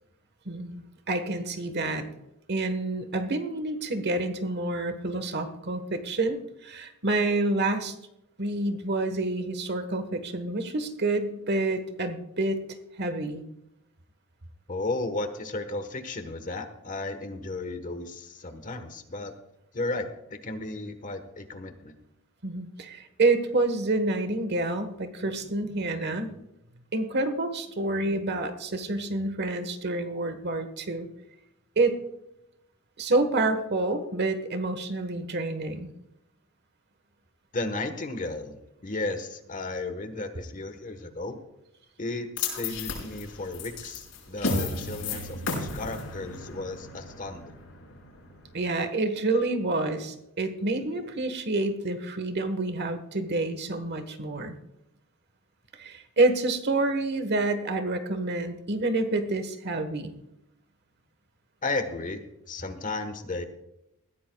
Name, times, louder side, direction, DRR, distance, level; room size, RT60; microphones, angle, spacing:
voice 1, 0.4-2.1 2.5-7.9 8.4-12.6 13.0-13.4 22.4-26.3 26.9-31.1 31.8-32.0 33.0-35.9 48.5-54.6 55.8-60.1, right 2 dB, 50° right, 9 dB, 1.3 m, -28 dB
voice 2, 14.7-19.3 19.7-21.9 37.5-41.4 42.0-47.6 61.6-63.4, left 2 dB, 35° left, 8 dB, 1.2 m, -34 dB
sound 1, 42.4-48.6, left 3 dB, 65° left, 5.1 m, -34 dB
20.5 x 15.0 x 2.3 m, 0.85 s
head